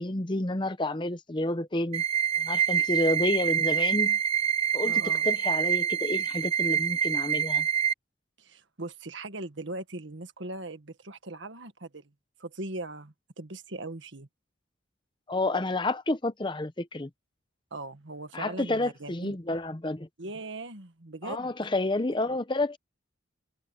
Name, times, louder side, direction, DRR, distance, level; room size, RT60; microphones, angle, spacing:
voice 1, 0.0-2.0 2.4-4.2 4.7-7.7 15.3-17.1 18.3-20.1 21.2-22.8, left 2 dB, 25° left, 0.7 m, -29 dB
sound 1, 1.9-7.9, right 8 dB, 30° right, 0.3 m, -26 dB
voice 2, 4.8-5.3 8.4-12.1 12.4-14.3 17.7-19.4 20.2-21.5, right 2 dB, 65° right, 1.6 m, -40 dB
head